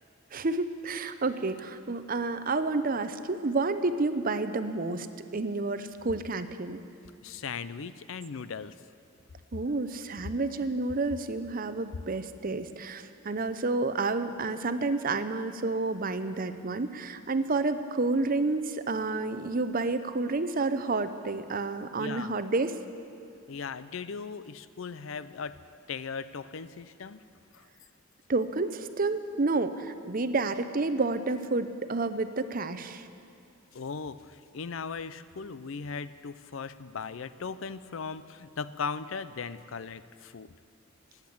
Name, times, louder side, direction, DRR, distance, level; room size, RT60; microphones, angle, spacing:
voice 1, 0.3-5.1 5.3-6.8 9.5-22.8 28.3-33.1, right 3 dB, 45° right, 11 dB, 0.7 m, -30 dB
voice 2, 7.2-8.7 22.0-22.3 23.5-25.6 25.9-27.2 33.7-34.2 34.5-40.5, left 5 dB, 70° left, 14 dB, 0.5 m, -38 dB
19.0 x 8.2 x 8.6 m, 2.4 s
head